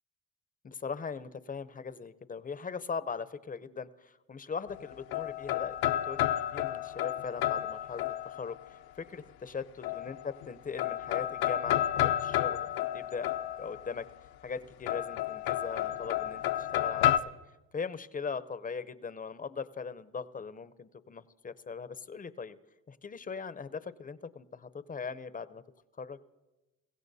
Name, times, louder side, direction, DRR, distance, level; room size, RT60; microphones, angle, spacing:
voice 1, 0.6-9.6 9.9-12.7 12.9-17.1 17.7-22.6 22.9-25.6 26.0-26.2, left 5 dB, 25° left, 14 dB, 0.6 m, -40 dB
sound 1, 4.7-8.7 9.8-10.5 10.8-14.0 14.9-17.2, left 12 dB, 70° left, 0.7 m, -31 dB
23.0 x 16.0 x 2.7 m, 1.1 s
supercardioid pair, 75°, 37 cm